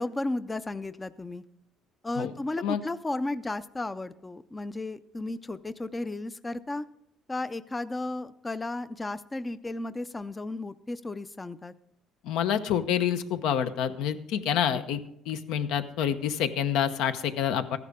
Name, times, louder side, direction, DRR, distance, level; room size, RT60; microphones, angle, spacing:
voice 1, 0.0-1.4 2.0-6.9 7.3-11.7, left 2 dB, 15° left, 14 dB, 0.4 m, -34 dB
voice 2, 12.2-15.0 15.3-17.8, left 9 dB, 85° left, 10 dB, 0.8 m, -27 dB
14.0 x 11.0 x 3.6 m, 0.79 s
cardioid pair, 145°, 0 cm